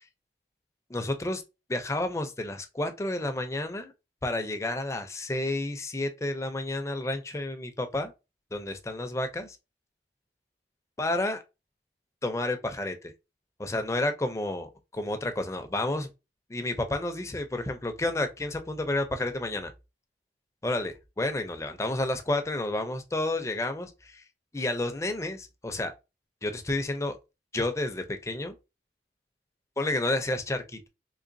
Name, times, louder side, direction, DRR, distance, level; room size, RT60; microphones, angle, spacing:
voice 1, 0.9-1.4 1.7-3.9 4.2-8.1 8.5-9.6 11.0-11.4 12.2-13.1 13.6-16.1 16.5-19.7 20.6-24.2 24.5-25.9 26.4-27.2 27.5-28.5 29.8-30.9, left 2 dB, 15° left, 0.4 m, -30 dB
3.8 x 2.9 x 2.6 m
head